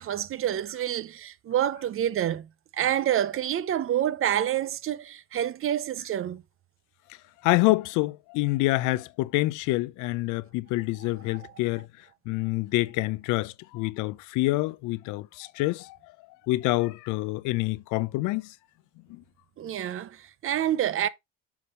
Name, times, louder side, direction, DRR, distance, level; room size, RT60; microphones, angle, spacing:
voice 1, 0.0-6.4 11.3-11.5 19.6-21.1, right 11 dB, 45° right, 0.7 m, -28 dB
voice 2, 7.4-11.9 12.3-16.0 16.5-18.5 19.1-19.2, left 20 dB, 80° left, 0.6 m, -27 dB
7.1 x 3.4 x 5.4 m
cardioid pair, 105°, 30 cm